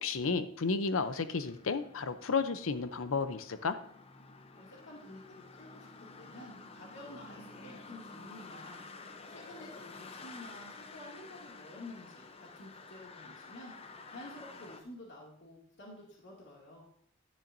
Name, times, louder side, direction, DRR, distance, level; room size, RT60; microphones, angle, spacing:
voice 1, 0.0-3.8, left 4 dB, 80° left, 12 dB, 0.6 m, -32 dB
sound 1, 0.8-14.8, left 3 dB, 30° left, 0.6 m, -51 dB
voice 2, 4.6-8.8 9.3-16.8, left 1 dB, 60° left, -3 dB, 2.4 m, -51 dB
11.5 x 10.5 x 2.6 m, 0.63 s
head